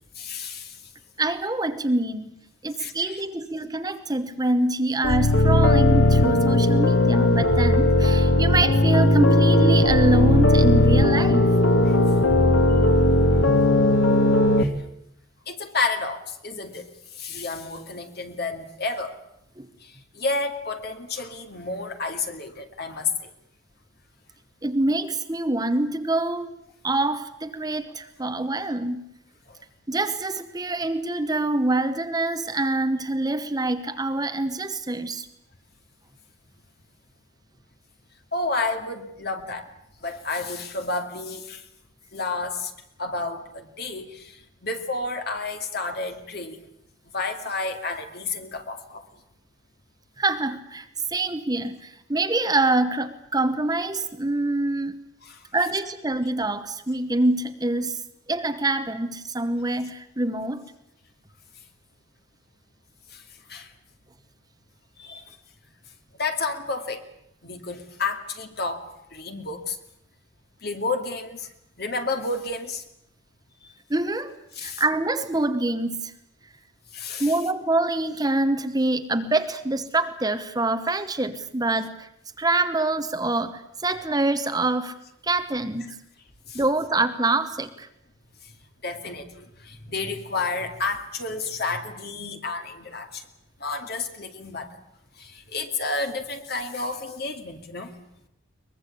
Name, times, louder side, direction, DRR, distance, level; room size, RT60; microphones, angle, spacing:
voice 1, 0.2-0.8 2.8-2.9 11.9-12.0 14.6-14.7 15.5-16.9 17.2-19.1 19.8-23.3 38.3-39.7 40.0-41.6 42.1-42.7 43.0-46.6 47.1-49.1 55.2-55.4 63.1-63.2 63.5-63.7 65.0-65.2 66.2-67.0 67.4-69.8 70.6-71.5 71.8-72.8 74.6-74.8 76.9-77.3 86.5-86.6 88.8-93.2 93.6-94.7 95.2-97.9, left 3 dB, 50° left, 5 dB, 2.2 m, -30 dB
voice 2, 1.2-2.4 2.6-11.6 19.6-19.7 24.6-26.5 26.8-29.0 29.9-35.3 50.2-54.9 55.5-58.0 58.3-60.6 73.9-76.1 77.2-82.1 82.4-85.0 85.2-85.9 86.5-87.9, right 2 dB, 20° right, 9 dB, 1.0 m, -25 dB
sound 1, 5.0-14.6, left 1 dB, 70° left, 1.3 m, -18 dB
23.0 x 21.0 x 8.4 m, 0.77 s
head